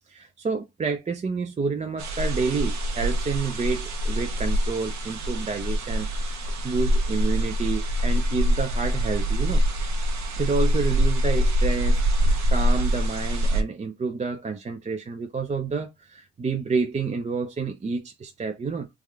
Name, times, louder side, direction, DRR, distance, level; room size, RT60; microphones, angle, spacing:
voice 1, 0.1-9.6 10.4-18.9, right 4 dB, 25° right, 0.4 m, -29 dB
sound 1, 2.0-13.6, equal, 65° right, 0.9 m, -24 dB
3.5 x 2.3 x 3.1 m
cardioid pair, 90°, 30 cm